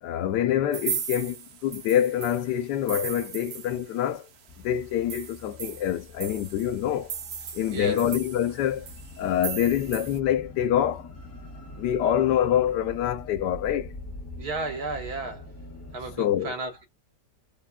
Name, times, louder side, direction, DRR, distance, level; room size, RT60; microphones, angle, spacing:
voice 1, 0.0-4.3 4.6-7.1 7.5-8.9 9.2-11.1 11.8-13.9 16.2-16.5, left 10 dB, 85° left, 1.2 m, -26 dB
sound 1, 0.7-4.2 4.5-4.6 4.9-10.2, right 7 dB, 85° right, 0.5 m, -37 dB
sound 2, 4.5-16.2, left 2 dB, 15° left, 0.6 m, -44 dB
voice 2, 7.7-8.0 14.4-15.5 15.9-16.8, right 3 dB, 70° right, 1.7 m, -33 dB
3.3 x 2.2 x 2.3 m
omnidirectional pair, 1.8 m